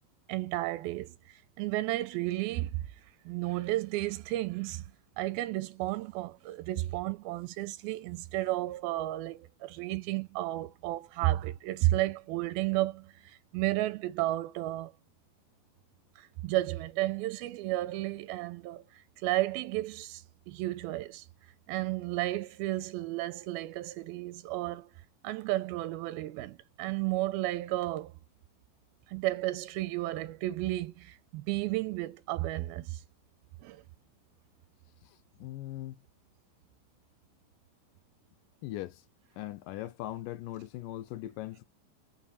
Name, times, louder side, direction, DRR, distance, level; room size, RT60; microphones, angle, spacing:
voice 1, 0.3-2.8 3.3-4.8 5.2-14.9 16.2-18.8 19.2-21.3 21.7-24.9 25.2-28.1 29.1-33.0 33.6-33.8, right 17 dB, 90° right, 2.5 m, -33 dB
voice 2, 35.0-36.0 38.6-39.0 39.4-41.6, left 15 dB, 80° left, 2.1 m, -40 dB
6.8 x 5.6 x 3.4 m
omnidirectional pair, 4.3 m